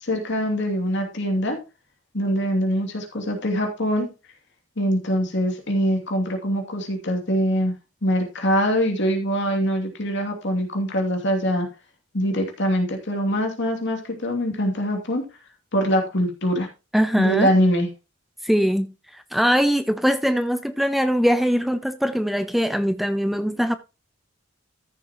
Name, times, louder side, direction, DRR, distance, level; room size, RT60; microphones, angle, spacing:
voice 1, 0.0-1.6 2.1-4.1 4.8-7.7 8.0-11.7 12.1-15.2 15.7-16.7 17.2-17.9, equal, 60° left, 2.7 m, -23 dB
voice 2, 16.9-17.5 18.4-23.8, equal, ahead, 0.4 m, -22 dB
14.0 x 6.7 x 3.0 m
head